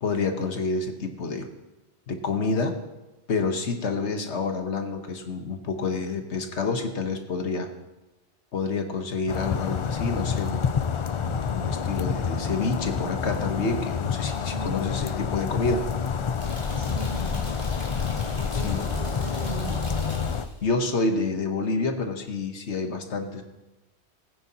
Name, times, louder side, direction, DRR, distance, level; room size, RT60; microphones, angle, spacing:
voice 1, 0.0-1.5 2.1-2.8 3.3-7.7 8.5-10.6 11.2-15.8 18.5-18.8 20.6-23.4, left 4 dB, 80° left, 5 dB, 1.4 m, -28 dB
sound 1, 9.3-20.5, left 6 dB, 55° left, 0.3 m, -28 dB
voice 2, 14.5-15.2 16.7-17.7 18.3-19.9, right 1 dB, 85° right, -6 dB, 4.1 m, -39 dB
sound 2, 16.4-20.6, equal, 25° right, 3.7 m, -37 dB
20.0 x 9.3 x 2.9 m, 1.0 s
omnidirectional pair, 1.1 m